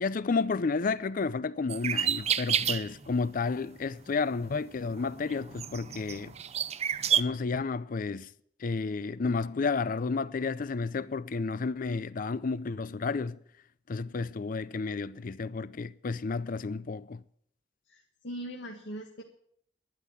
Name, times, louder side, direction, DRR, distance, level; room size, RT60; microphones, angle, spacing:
voice 1, 0.0-6.3 7.1-8.3 8.6-13.4 13.9-17.2, left 4 dB, 45° left, 0.5 m, -31 dB
sound 1, 1.7-3.1 3.6-3.9 4.5-7.2, right 9 dB, 35° right, 0.5 m, -30 dB
voice 2, 17.9-19.2, right 1 dB, 70° left, 1.8 m, -40 dB
12.0 x 10.5 x 7.3 m
head